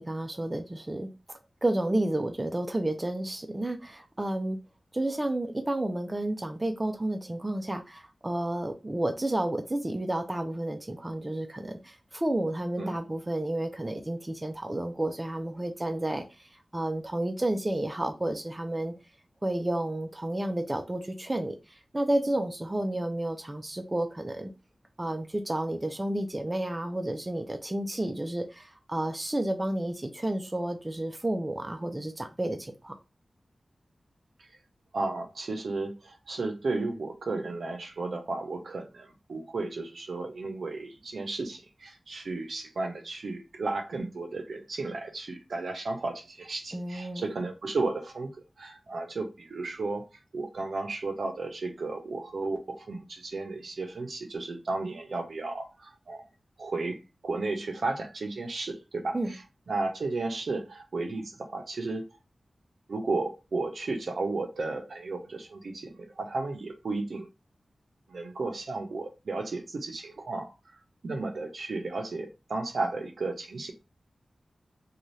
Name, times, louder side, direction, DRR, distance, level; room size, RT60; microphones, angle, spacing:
voice 1, 0.0-4.6 4.9-18.9 19.4-24.5 25.0-33.0 46.7-47.3 59.1-59.3, right 1 dB, 20° right, 0.5 m, -31 dB
voice 2, 34.9-50.1 50.3-56.3 56.6-59.4 59.7-62.1 62.9-67.3 68.1-70.5 71.0-73.7, right 3 dB, 75° right, 0.6 m, -34 dB
2.6 x 2.3 x 3.1 m
wide cardioid pair, 75°, 0 cm